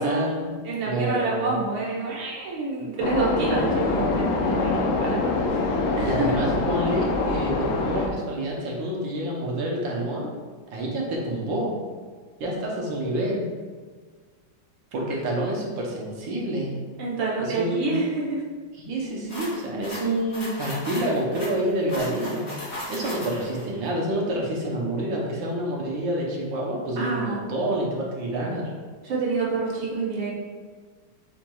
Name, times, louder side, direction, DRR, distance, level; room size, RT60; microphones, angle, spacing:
voice 1, 0.0-0.5 0.9-1.6 6.0-10.3 10.7-11.7 12.4-13.5 14.9-16.8 17.4-18.0 18.8-22.5 22.9-28.7, right 1 dB, 70° right, -3 dB, 1.6 m, -28 dB
voice 2, 0.6-6.4 17.0-18.4 27.0-27.4 29.0-30.3, right 3 dB, 85° right, -4 dB, 1.8 m, -27 dB
sound 1, 3.0-8.1, left 3 dB, 90° left, 0.8 m, -25 dB
sound 2, 19.3-23.6, left 1 dB, 40° left, 0.7 m, -36 dB
5.2 x 4.4 x 2.3 m, 1.5 s
omnidirectional pair, 2.2 m